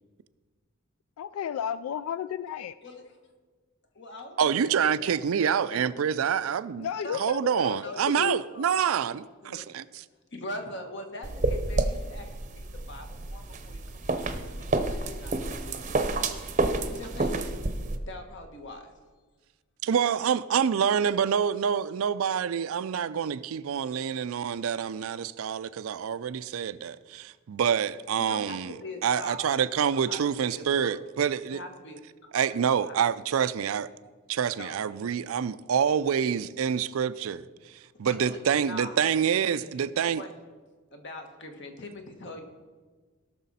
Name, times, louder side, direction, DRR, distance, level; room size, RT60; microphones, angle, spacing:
voice 1, 1.2-2.8 6.8-8.4, left 8 dB, 80° left, 0.3 m, -33 dB
voice 2, 2.8-3.2 3.9-5.8 7.0-8.9 9.4-9.7 10.3-16.1 16.9-17.4 18.1-18.9 28.2-29.7 29.9-31.0 31.5-33.0 34.6-34.7 38.0-39.0 39.5-40.3 40.9-42.4, left 1 dB, 55° left, 1.4 m, -43 dB
voice 3, 4.4-10.0 19.8-28.8 29.0-31.6 32.3-33.9 34.3-40.2, right 7 dB, 75° right, 0.4 m, -27 dB
sound 1, 11.2-18.0, right 2 dB, 35° right, 0.7 m, -29 dB
17.5 x 6.1 x 4.2 m
head